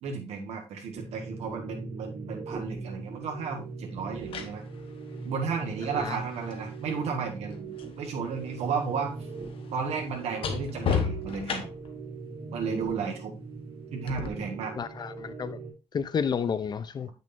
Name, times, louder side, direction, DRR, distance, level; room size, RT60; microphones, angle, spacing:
voice 1, 0.0-4.6 5.2-7.7 8.0-9.2 9.7-11.7 12.5-13.3 13.9-14.7, right 5 dB, 90° right, 1.5 m, -33 dB
sound 1, 0.9-15.7, right 4 dB, 50° right, 2.9 m, -40 dB
sound 2, 2.7-2.9 4.0-8.0 8.3-12.0 14.1-14.3, left 6 dB, 60° left, 1.1 m, -35 dB
voice 2, 14.8-15.6 15.9-17.1, left 6 dB, 40° left, 0.6 m, -31 dB
8.6 x 6.4 x 2.6 m
cardioid pair, 130°, 11 cm